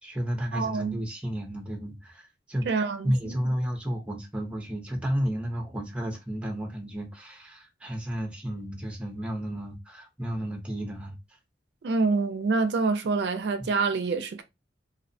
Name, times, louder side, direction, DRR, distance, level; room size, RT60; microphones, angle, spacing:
voice 1, 0.0-11.2, equal, 5° right, 0.6 m, -32 dB
voice 2, 0.5-1.0 2.7-3.3 11.8-14.4, right 4 dB, 70° right, 0.4 m, -26 dB
2.7 x 2.0 x 2.5 m
head